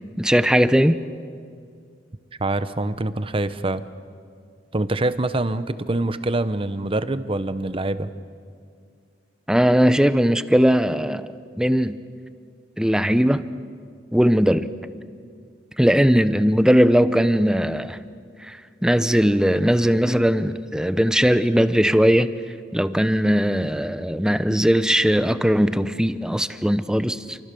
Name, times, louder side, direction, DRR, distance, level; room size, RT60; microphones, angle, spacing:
voice 1, 0.2-1.0 9.5-11.3 11.6-12.0 12.8-13.4 14.1-14.7 15.8-18.0 18.4-18.6 18.8-22.3 22.7-27.4, equal, 5° right, 12 dB, 0.7 m, -19 dB
voice 2, 2.4-3.8 4.7-8.1, right 2 dB, 30° right, 13 dB, 0.9 m, -25 dB
28.5 x 24.5 x 6.9 m, 2.2 s
head